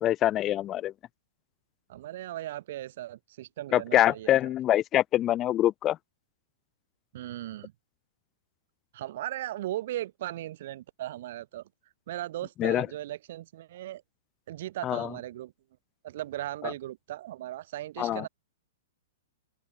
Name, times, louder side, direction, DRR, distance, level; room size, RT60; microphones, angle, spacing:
voice 1, 0.0-0.9 3.7-6.0 12.6-12.9 14.8-15.1 18.0-18.2, left 13 dB, 25° left, 0.5 m, -25 dB
voice 2, 1.9-4.3 7.1-7.7 8.9-11.7 12.1-14.0 14.5-15.5 16.0-18.3, right 14 dB, 50° right, 2.2 m, -37 dB
open air
figure-of-eight pair, 105°, 0 cm